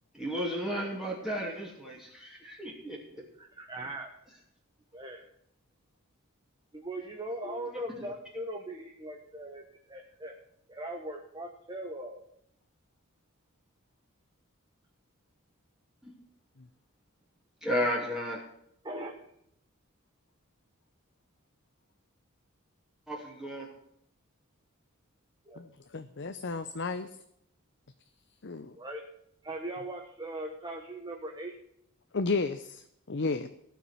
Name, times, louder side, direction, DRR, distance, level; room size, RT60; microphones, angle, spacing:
voice 1, 0.1-3.2 7.4-7.9 16.0-16.1 17.6-18.4 23.1-23.7, equal, ahead, -4 dB, 2.7 m, -34 dB
voice 2, 3.4-4.1 4.9-5.2 6.7-10.3 10.7-12.2 18.8-19.1 25.4-25.6 28.7-29.0 29.4-31.6, right 1 dB, 20° right, 2 dB, 1.2 m, -40 dB
voice 3, 25.9-27.1 28.4-28.7 32.1-33.5, left 3 dB, 55° left, 10 dB, 0.7 m, -32 dB
16.5 x 6.0 x 9.9 m, 0.73 s
head